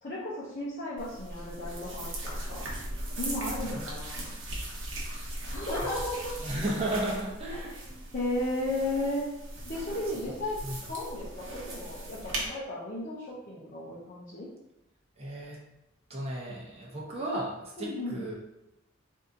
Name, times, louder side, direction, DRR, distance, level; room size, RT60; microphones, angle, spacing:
voice 1, 0.0-2.7 3.2-4.3 5.5-6.3 7.5-7.6 8.1-9.3 9.6-14.5 17.8-18.2, left 1 dB, 40° left, -8 dB, 0.7 m, -34 dB
sound 1, 1.0-12.5, right 1 dB, 65° right, 1.0 m, -38 dB
voice 2, 3.6-4.2 6.4-7.8 10.1-10.8 15.2-15.6 16.1-18.4, right 1 dB, 30° right, -4 dB, 0.9 m, -35 dB
4.0 x 2.8 x 3.7 m, 0.90 s
head